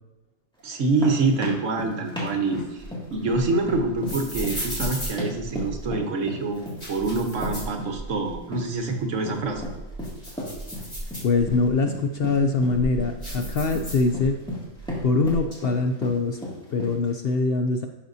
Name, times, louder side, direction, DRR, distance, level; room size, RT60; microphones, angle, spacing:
voice 1, 0.6-2.8 3.1-9.6, right 3 dB, 70° right, 4 dB, 1.3 m, -26 dB
sound 1, 0.7-17.1, left 1 dB, 5° left, 2.1 m, -35 dB
sound 2, 2.5-6.0 6.5-8.4 8.7-8.8 9.3-11.7 12.3-14.5 14.7-15.5, right 1 dB, 20° left, 2.9 m, -35 dB
voice 2, 11.2-14.4 15.0-16.4 16.7-17.9, left 3 dB, 60° left, 5 dB, 0.7 m, -23 dB
11.5 x 6.0 x 2.7 m, 1.1 s
omnidirectional pair, 1.4 m